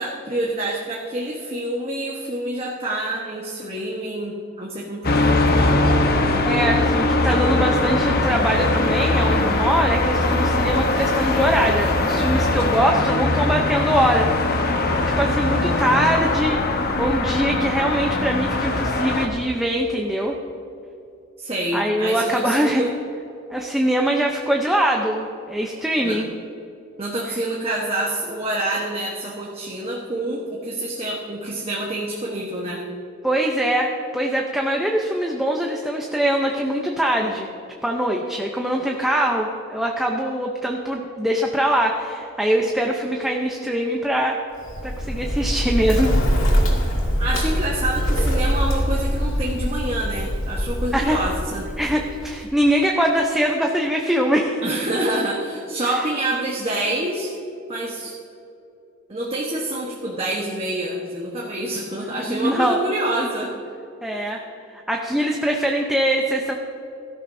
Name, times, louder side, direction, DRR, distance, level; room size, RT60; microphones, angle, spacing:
voice 1, 0.0-5.8 21.4-22.9 26.0-26.2 27.0-32.8 47.2-51.7 54.6-57.3 57.7-58.2 59.1-63.5 64.1-64.3, right 1 dB, 30° right, -3 dB, 1.2 m, -27 dB
sound 1, 5.0-19.3, left 2 dB, 50° left, 1.1 m, -21 dB
voice 2, 6.4-14.3 15.2-20.4 21.7-22.8 23.5-26.3 27.3-27.4 33.2-37.5 37.8-44.4 44.8-46.2 50.9-51.2 51.8-54.6 62.2-62.8 64.0-64.4 64.7-66.6, right 1 dB, ahead, 0 dB, 0.7 m, -22 dB
Bird, 44.6-52.4, equal, 80° left, 2.5 m, -23 dB
16.5 x 13.5 x 2.7 m, 2.8 s
head